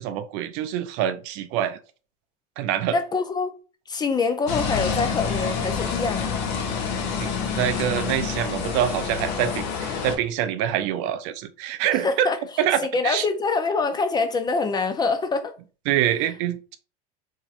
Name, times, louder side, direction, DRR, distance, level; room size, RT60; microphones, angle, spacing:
voice 1, 0.0-1.8 2.6-3.0 7.2-12.3 12.6-13.2 15.9-16.8, right 11 dB, 60° right, 0.4 m, -25 dB
voice 2, 2.9-3.6 3.9-6.3 12.0-12.4 12.9-15.5, left 4 dB, 20° left, 0.4 m, -25 dB
sound 1, 4.5-10.2, left 6 dB, 65° left, 0.8 m, -27 dB
2.9 x 2.7 x 2.4 m
supercardioid pair, 105°, 20 cm